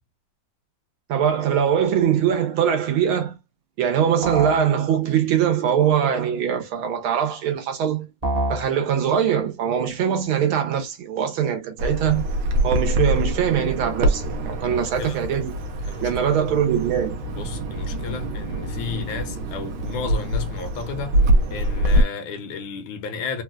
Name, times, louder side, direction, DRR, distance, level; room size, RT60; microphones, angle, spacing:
voice 1, 1.1-3.4 3.8-8.1 8.5-12.3 12.6-15.5 16.0-17.2, right 8 dB, 85° right, 1.7 m, -22 dB
sound 1, 4.2-4.7 8.2-8.7, right 2 dB, 30° right, 0.8 m, -25 dB
Bird vocalization bird call bird song, 11.8-22.0, right 1 dB, 70° right, 1.3 m, -24 dB
voice 2, 14.6-15.3 15.8-16.4 17.3-21.2 21.5-23.4, left 6 dB, 75° left, 1.4 m, -33 dB
4.1 x 2.3 x 2.4 m
omnidirectional pair, 2.3 m